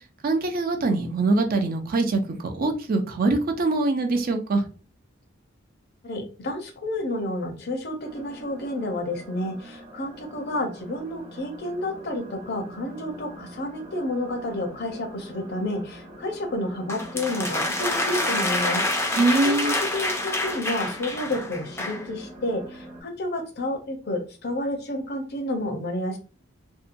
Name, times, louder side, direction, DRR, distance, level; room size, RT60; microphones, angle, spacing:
voice 1, 0.2-4.6 19.1-19.8, right 3 dB, 50° right, 5 dB, 0.5 m, -23 dB
voice 2, 6.0-26.2, left 1 dB, 55° left, 4 dB, 0.7 m, -30 dB
sound 1, 8.0-23.0, right 1 dB, 30° right, 0.8 m, -44 dB
sound 2, 16.9-22.1, left 2 dB, 15° left, 0.4 m, -27 dB
2.7 x 2.2 x 2.5 m, 0.36 s
head